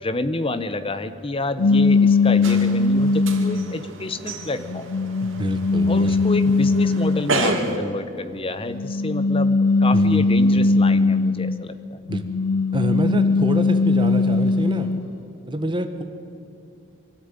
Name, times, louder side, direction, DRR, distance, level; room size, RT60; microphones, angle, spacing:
voice 1, 0.0-4.9 5.9-12.0, left 2 dB, 25° left, 12 dB, 0.9 m, -28 dB
sound 1, 1.6-3.8 4.4-7.5 8.7-11.6 12.1-15.1, left 3 dB, 65° left, 0.5 m, -20 dB
Coffee machine being used, 2.4-7.8, right 2 dB, 60° right, 2.5 m, -30 dB
voice 2, 5.2-6.1 9.9-10.2 12.1-12.2 12.7-14.9 15.5-16.0, right 1 dB, 20° right, 7 dB, 1.4 m, -26 dB
24.0 x 13.0 x 9.2 m, 2.6 s
head